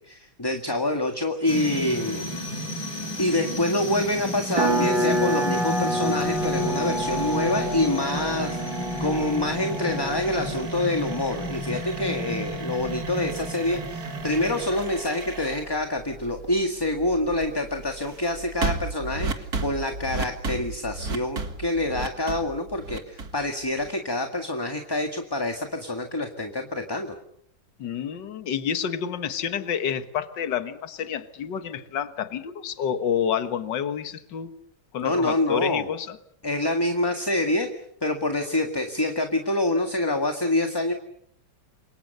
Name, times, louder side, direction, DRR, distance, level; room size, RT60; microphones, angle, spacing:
voice 1, 0.0-2.4 3.2-27.1 35.0-35.8 36.4-37.7 38.0-40.9, left 1 dB, 10° left, 5 dB, 1.7 m, -26 dB
sound 1, 1.5-14.8, left 1 dB, 80° left, 5.9 m, -32 dB
sound 2, 4.6-10.8, right 1 dB, 70° right, 5.2 m, -28 dB
sound 3, 6.2-24.1, right 4 dB, 50° right, 2.4 m, -36 dB
voice 2, 27.8-34.5 34.9-36.2, left 8 dB, 65° left, 10 dB, 2.0 m, -29 dB
29.0 x 24.5 x 6.8 m, 0.69 s
omnidirectional pair, 2.1 m